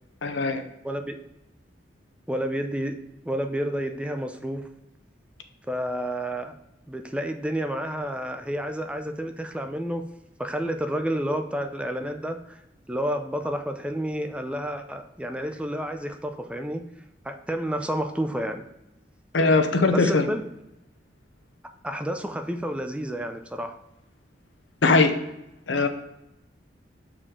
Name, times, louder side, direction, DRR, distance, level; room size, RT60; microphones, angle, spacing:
voice 1, 0.2-0.6 19.3-20.3 24.8-25.1 25.7-25.9, left 3 dB, 80° left, 7 dB, 0.8 m, -20 dB
voice 2, 0.8-1.2 2.3-3.0 3.2-4.7 5.7-6.5 6.9-10.1 10.4-12.6 12.9-16.9 17.2-18.7 19.9-20.5 21.8-23.8, equal, 5° right, 6 dB, 0.5 m, -30 dB
6.4 x 4.9 x 3.7 m, 0.90 s
head